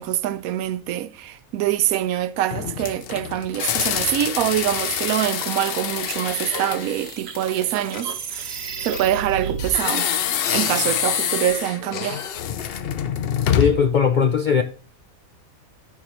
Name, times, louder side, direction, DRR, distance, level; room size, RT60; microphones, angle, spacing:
voice 1, 0.0-10.1 10.5-12.2, right 12 dB, 85° right, 1.0 m, -25 dB
sound 1, 2.5-7.9 9.6-13.9, left 9 dB, 55° left, 0.7 m, -26 dB
sound 2, 6.0-9.8, right 6 dB, 50° right, 1.1 m, -32 dB
Tick-tock, 7.9-8.1 8.9-9.0 9.9-10.0 10.9-11.1 11.9-12.1, left 9 dB, 75° left, 1.1 m, -37 dB
voice 2, 13.6-14.6, left 6 dB, 90° left, 0.4 m, -18 dB
14.0 x 4.8 x 2.9 m
omnidirectional pair, 1.5 m